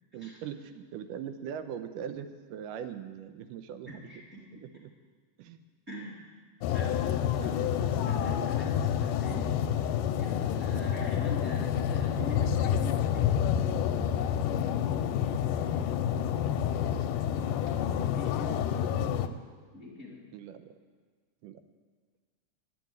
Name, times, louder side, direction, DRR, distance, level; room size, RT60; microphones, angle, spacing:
voice 1, 0.1-4.1 4.6-4.9 5.4-5.6 15.6-15.8 20.3-20.8 21.4-21.6, right 8 dB, 85° right, 9 dB, 2.3 m, -41 dB
voice 2, 4.0-4.4 5.9-6.3 6.7-7.1 7.4-7.6 7.9-9.5 10.2-13.2 17.9-19.1 19.7-20.2, left 1 dB, 25° right, -5 dB, 2.7 m, -43 dB
sound 1, 6.6-19.3, left 9 dB, 90° left, 2.2 m, -28 dB
10.5 x 9.2 x 9.3 m, 1.5 s
omnidirectional pair, 3.7 m